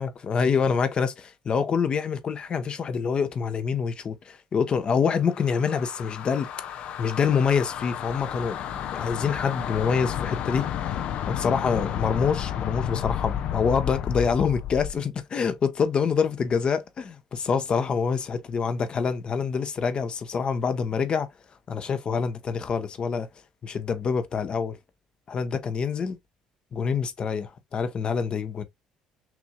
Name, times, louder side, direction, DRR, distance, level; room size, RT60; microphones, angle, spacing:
voice 1, 0.0-6.5 7.0-11.0 11.3-21.3 21.7-23.3 23.6-24.8 25.3-26.2 26.7-28.6, left 6 dB, 45° left, 0.8 m, -26 dB
sound 1, 5.3-15.0, left 10 dB, 65° left, 0.6 m, -32 dB
5.9 x 2.7 x 2.2 m
hypercardioid pair, 65°, 2 cm